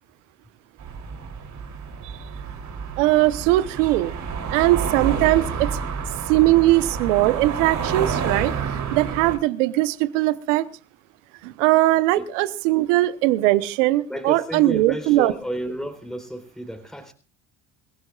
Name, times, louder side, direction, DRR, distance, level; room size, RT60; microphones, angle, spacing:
sound 1, 0.8-9.4, right 6 dB, 50° right, 3.4 m, -29 dB
voice 1, 3.0-4.1 4.5-5.7 6.3-8.5 8.9-10.7 11.4-15.3, right 17 dB, 85° right, 1.1 m, -20 dB
voice 2, 14.1-17.1, equal, ahead, 3.8 m, -32 dB
27.5 x 15.5 x 2.5 m
supercardioid pair, 75°, 36 cm